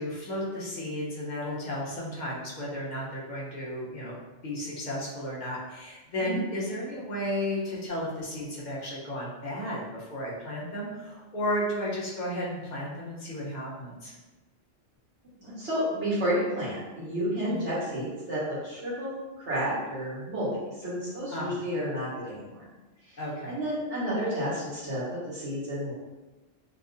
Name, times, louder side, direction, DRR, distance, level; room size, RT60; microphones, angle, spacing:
voice 1, 0.0-4.2 4.4-14.1 17.5-17.6 21.3-21.6 23.2-23.6, left 1 dB, 45° left, -6 dB, 0.8 m, -33 dB
voice 2, 15.4-19.1 19.4-22.6 23.0-23.2 23.5-25.9, equal, 65° right, -9 dB, 1.6 m, -31 dB
3.0 x 2.7 x 2.4 m, 1.2 s
omnidirectional pair, 1.3 m